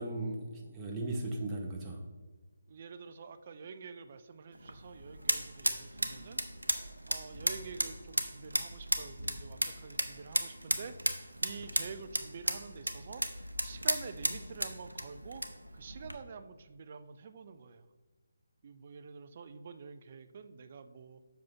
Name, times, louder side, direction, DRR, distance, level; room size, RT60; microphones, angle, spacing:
voice 1, 0.0-2.0, right 2 dB, 15° right, -1 dB, 0.9 m, -37 dB
voice 2, 2.7-6.4 7.1-13.2 13.6-15.4 15.7-17.9 18.6-21.2, right 5 dB, 40° right, 10 dB, 0.5 m, -47 dB
sound 1, 4.5-16.2, right 1 dB, 85° right, 0.8 m, -35 dB
7.6 x 5.7 x 3.8 m, 1.3 s
figure-of-eight pair, 150°, 0 cm